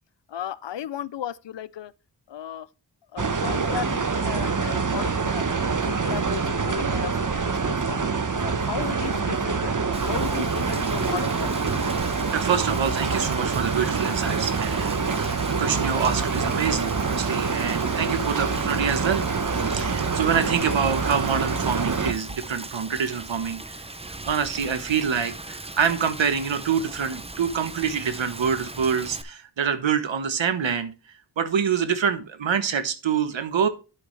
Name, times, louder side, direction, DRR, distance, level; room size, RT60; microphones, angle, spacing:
voice 1, 0.3-1.9 2.3-2.7 3.1-8.1 8.4-9.7 10.1-11.7, left 10 dB, 70° left, 0.6 m, -35 dB
sound 1, 3.2-22.1, right 4 dB, 45° right, 1.1 m, -26 dB
Rain, 9.9-29.2, right 2 dB, 15° right, 0.8 m, -39 dB
voice 2, 12.3-19.2 19.5-23.8 24.2-30.9 31.4-33.7, right 7 dB, 90° right, 1.1 m, -26 dB
11.5 x 5.9 x 3.2 m
wide cardioid pair, 60°, 44 cm